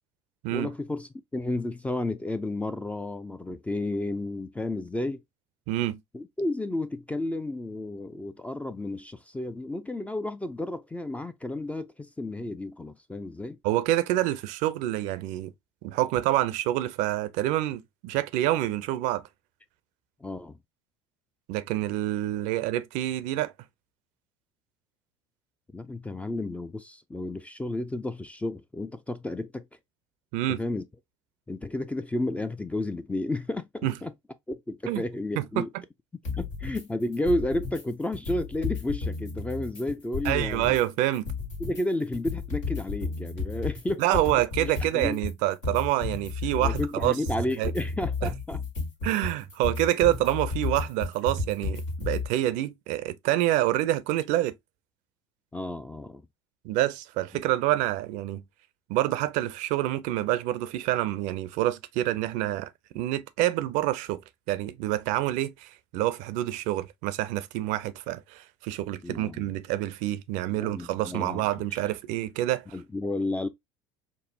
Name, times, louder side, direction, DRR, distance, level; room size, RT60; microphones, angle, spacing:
voice 1, 0.5-5.2 6.1-13.6 20.2-20.6 25.7-29.7 30.5-30.8 31.5-34.1 34.5-35.7 36.4-40.8 41.6-44.2 44.6-45.2 46.6-48.6 55.5-56.2 69.0-69.5 70.5-71.4 71.7-71.8 72.7-73.5, left 2 dB, 10° left, 0.3 m, -32 dB
voice 2, 5.7-6.0 13.6-15.5 15.8-19.2 21.5-23.5 30.3-30.6 33.8-33.9 34.9-35.0 35.4-35.6 40.2-41.3 44.0-47.2 47.6-47.7 48.2-48.3 49.0-54.5 56.6-58.4 58.9-62.7 62.9-64.2 64.5-72.6, right 14 dB, 55° right, 0.5 m, -27 dB
sound 1, 36.2-36.8 37.1-37.8 38.1-40.8 41.1-52.3, left 4 dB, 80° left, 1.5 m, -33 dB
5.2 x 2.0 x 2.6 m
figure-of-eight pair, 70°, 15 cm